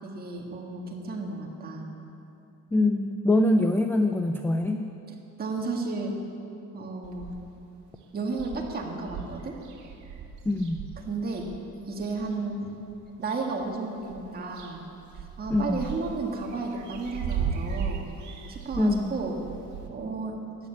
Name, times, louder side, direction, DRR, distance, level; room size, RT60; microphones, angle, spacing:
voice 1, 0.0-1.9 4.7-4.8 5.4-6.1 6.7-7.3 8.1-9.6 11.0-11.5 11.9-12.8 13.2-14.8 15.4-18.1 18.5-19.3 19.9-20.4, right 3 dB, 30° right, 0 dB, 1.8 m, -33 dB
voice 2, 2.7-4.8 10.4-10.8 15.5-15.8 18.8-19.2, left 2 dB, 5° left, 5 dB, 0.4 m, -24 dB
sound 1, 7.0-7.6 8.0-8.1 8.3-12.4 12.9-13.7 14.0-19.9, right 7 dB, 65° right, 1.7 m, -37 dB
13.5 x 10.0 x 8.3 m, 2.8 s
cardioid pair, 175°, 31 cm